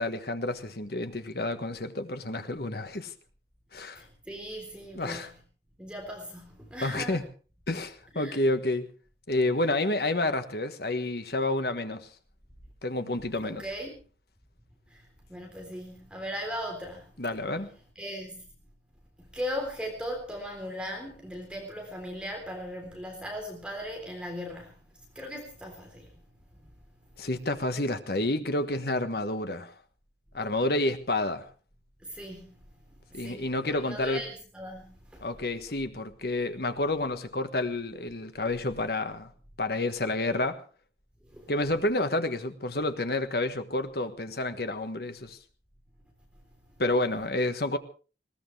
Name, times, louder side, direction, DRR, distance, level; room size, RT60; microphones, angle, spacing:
voice 1, 0.0-3.1 3.7-4.0 4.9-5.3 6.8-7.2 7.7-8.9 9.3-12.1 12.8-13.6 17.2-17.7 27.2-29.7 30.3-31.5 33.1-34.2 35.2-39.3 39.6-40.6 41.5-45.4 46.8-47.8, left 2 dB, 60° left, 1.5 m, -29 dB
voice 2, 4.0-5.4 5.8-7.2 8.1-8.4 13.4-13.9 14.9-17.2 18.0-18.4 19.2-24.8 25.1-26.2 26.5-26.7 32.0-32.7 33.1-35.3 41.2-41.5, equal, 5° right, 3.6 m, -38 dB
20.5 x 18.0 x 3.4 m
head